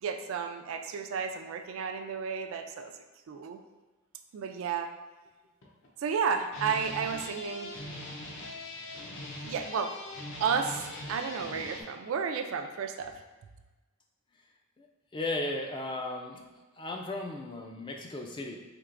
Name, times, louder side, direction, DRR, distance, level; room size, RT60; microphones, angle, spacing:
voice 1, 0.0-2.9 3.3-3.6 4.3-4.9 6.0-7.8 9.4-10.0 10.4-13.2, right 6 dB, 65° right, 6 dB, 0.3 m, -32 dB
sound 1, 4.8-4.9 5.4-6.2 6.4-11.8, left 1 dB, 60° left, 0.6 m, -41 dB
voice 2, 15.1-16.4 16.8-18.6, left 2 dB, 20° left, 2 dB, 0.3 m, -35 dB
4.5 x 2.9 x 2.5 m, 1.2 s
head